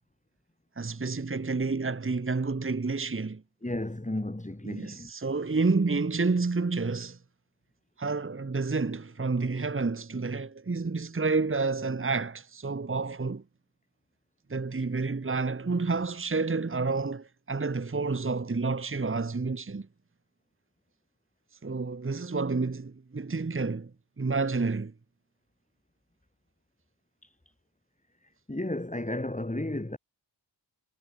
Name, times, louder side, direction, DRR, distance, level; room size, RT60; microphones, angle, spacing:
voice 1, 0.8-3.4 4.6-7.2 8.0-13.4 14.5-19.9 21.6-23.9 24.2-24.9, right 4 dB, 30° right, 1.4 m, -29 dB
voice 2, 3.6-5.2 27.2-27.3 28.5-30.0, left 1 dB, 15° left, 5.3 m, -33 dB
cardioid pair, 60°, 45 cm